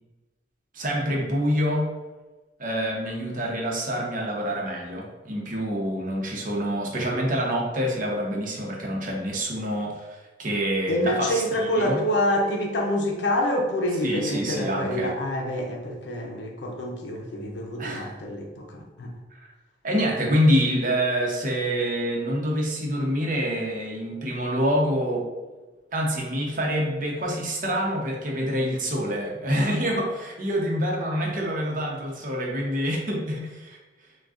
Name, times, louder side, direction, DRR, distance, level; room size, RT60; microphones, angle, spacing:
voice 1, 0.7-1.9 2.6-12.0 14.0-15.1 17.8-18.1 19.8-25.3 25.9-33.8, equal, 50° right, -1 dB, 0.8 m, -26 dB
voice 2, 10.9-19.1, left 1 dB, 80° left, 1 dB, 0.6 m, -27 dB
6.1 x 2.3 x 2.4 m, 1.2 s
head